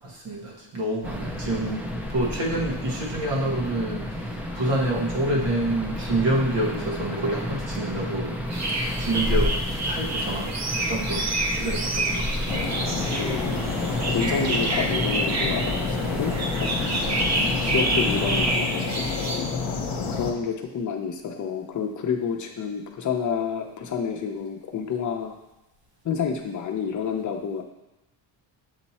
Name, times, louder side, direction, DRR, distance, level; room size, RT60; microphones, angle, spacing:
voice 1, 0.0-1.8 2.1-8.4 9.0-12.7, right 1 dB, 70° right, -3 dB, 1.8 m, -28 dB
sound 1, 1.0-18.6, equal, 5° right, 0.4 m, -31 dB
sound 2, 8.5-19.4, right 2 dB, 35° right, 0.7 m, -28 dB
sound 3, 12.5-20.3, left 5 dB, 60° left, 1.0 m, -29 dB
voice 2, 13.1-17.1 17.6-19.5 20.1-25.3 26.0-27.6, left 6 dB, 40° left, 3 dB, 0.8 m, -29 dB
7.9 x 2.9 x 4.2 m, 0.97 s
cardioid pair, 150°, 46 cm